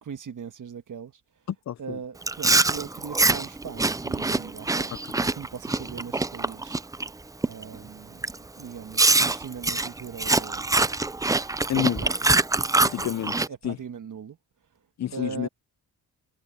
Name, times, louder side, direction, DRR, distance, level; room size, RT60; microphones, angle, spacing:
voice 1, 0.0-1.2 1.8-5.0 5.3-6.8 7.4-8.2 8.5-10.6 11.8-12.4 13.5-14.4 15.1-15.5, right 7 dB, 55° right, 1.6 m, -39 dB
voice 2, 1.5-2.0 11.7-12.0 12.8-13.8 15.0-15.5, left 11 dB, 50° left, 0.6 m, -29 dB
Chewing mastication, 2.2-7.1 7.4-7.8 8.2-8.4 9.0-13.5, right 3 dB, 10° right, 0.3 m, -24 dB
wide cardioid pair, 110°, 36 cm